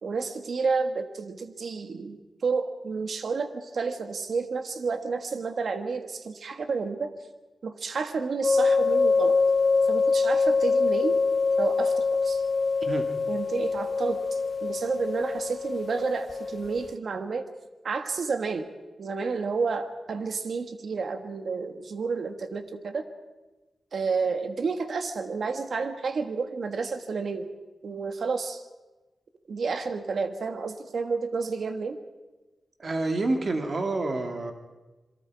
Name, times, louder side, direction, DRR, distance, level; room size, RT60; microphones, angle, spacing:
voice 1, 0.0-7.1 7.6-9.4 9.9-11.2 11.6-12.4 13.3-17.5 17.8-18.7 19.0-23.0 23.9-27.5 27.8-28.6 29.5-32.0, right 4 dB, 65° right, 8 dB, 1.6 m, -30 dB
sound 1, 8.4-16.9, left 4 dB, 40° left, 0.8 m, -24 dB
voice 2, 32.8-34.5, right 2 dB, 45° right, 5 dB, 2.1 m, -28 dB
27.0 x 23.0 x 4.8 m, 1.2 s
wide cardioid pair, 120°, 0 cm